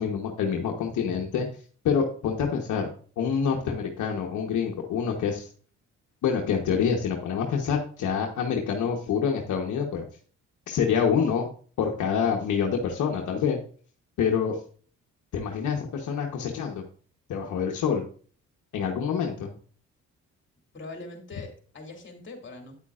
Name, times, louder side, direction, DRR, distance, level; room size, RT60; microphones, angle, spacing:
voice 1, 0.0-1.5 1.8-2.9 3.2-5.5 6.2-10.0 10.7-11.5 11.8-13.6 14.2-14.6 15.3-16.8 17.3-18.0 18.7-19.5, left 7 dB, 75° left, 1 dB, 1.2 m, -26 dB
voice 2, 20.7-22.7, left 3 dB, 40° left, 2 dB, 2.7 m, -42 dB
9.3 x 8.3 x 2.5 m, 0.43 s
cardioid pair, 90°, 30 cm